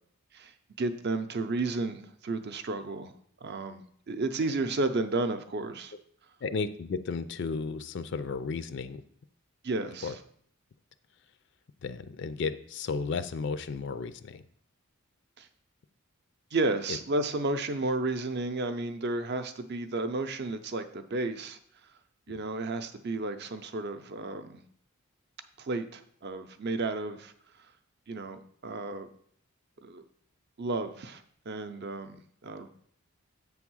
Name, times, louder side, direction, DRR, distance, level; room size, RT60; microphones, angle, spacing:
voice 1, 0.3-3.1 3.4-5.9 9.6-10.2 15.4-15.5 16.5-21.6 22.3-24.6 25.6-27.3 28.1-29.1 29.8-30.0 30.6-32.7, right 2 dB, 50° right, 9 dB, 0.6 m, -32 dB
voice 2, 6.4-9.0 10.0-10.1 11.8-14.4 16.9-17.0, left 4 dB, 55° left, 12 dB, 0.4 m, -33 dB
7.8 x 3.5 x 6.2 m, 0.64 s
head